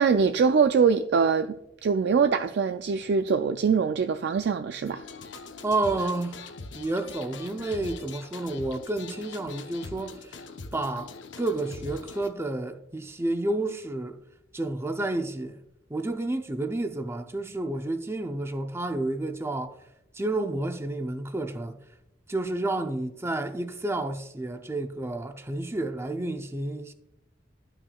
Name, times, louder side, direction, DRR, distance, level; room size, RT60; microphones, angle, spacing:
voice 1, 0.0-5.0, right 5 dB, 65° right, 0.3 m, -23 dB
sound 1, 4.9-12.3, left 4 dB, 75° left, 0.7 m, -42 dB
voice 2, 5.6-6.4 6.7-10.4 10.7-14.2 14.5-15.6 15.9-19.8 20.1-21.8 22.3-26.9, right 2 dB, 15° right, 0.6 m, -30 dB
12.5 x 5.9 x 2.3 m
head